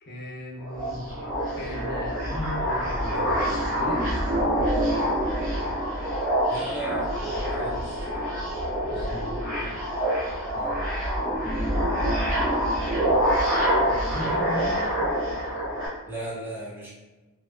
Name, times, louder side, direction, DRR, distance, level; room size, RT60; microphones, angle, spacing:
voice 1, 0.0-1.1 1.6-4.1 8.8-9.6 13.8-14.8, left 1 dB, 50° left, -2 dB, 0.6 m, -37 dB
sound 1, 0.6-15.9, equal, 40° right, 0.8 m, -26 dB
voice 2, 6.5-7.1 7.6-8.0 10.5-10.8 16.0-16.9, right 1 dB, 10° right, -6 dB, 0.5 m, -35 dB
2.5 x 2.2 x 2.4 m, 1.1 s
head